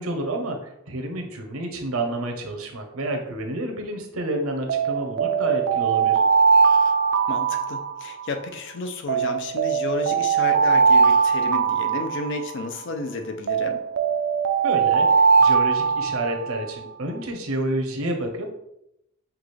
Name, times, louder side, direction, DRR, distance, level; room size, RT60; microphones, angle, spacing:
voice 1, 0.0-6.2 14.6-18.5, right 1 dB, 80° right, 3 dB, 0.8 m, -29 dB
Alarm, 4.7-8.4 9.1-12.8 13.5-16.7, right 5 dB, 55° right, 0.4 m, -20 dB
voice 2, 7.3-13.8, left 3 dB, 60° left, 5 dB, 0.6 m, -32 dB
5.8 x 2.4 x 3.2 m, 0.82 s
head